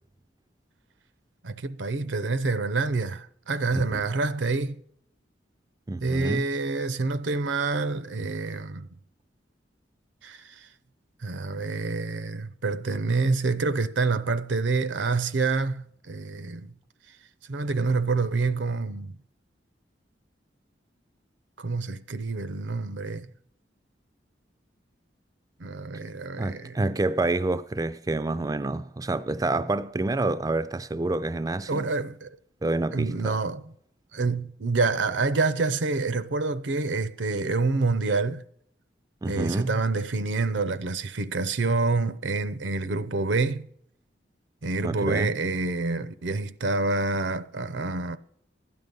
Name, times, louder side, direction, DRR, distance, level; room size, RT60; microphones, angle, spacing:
voice 1, 1.4-4.8 6.0-8.9 10.2-10.4 11.2-16.7 17.5-19.2 21.6-23.3 25.6-26.8 31.7-32.3 32.9-33.7 34.1-38.4 39.3-43.7 44.6-48.2, right 3 dB, 80° right, 0.7 m, -27 dB
voice 2, 3.7-4.1 5.9-6.4 26.4-31.9 32.6-33.4 39.2-39.8 44.8-45.4, right 2 dB, 20° right, 0.3 m, -28 dB
12.5 x 9.4 x 5.3 m
head